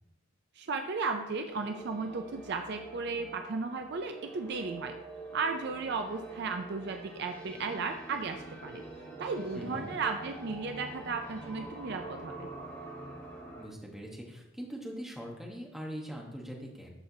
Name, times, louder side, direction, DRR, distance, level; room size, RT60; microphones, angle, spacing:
voice 1, 0.6-4.9 5.3-8.8 9.2-12.5, right 4 dB, 50° right, 6 dB, 0.4 m, -35 dB
sound 1, 1.5-13.6, right 2 dB, 20° left, 2.0 m, -46 dB
voice 2, 9.5-9.9 13.6-16.9, equal, ahead, -2 dB, 1.0 m, -42 dB
12.5 x 4.4 x 2.8 m, 0.92 s
head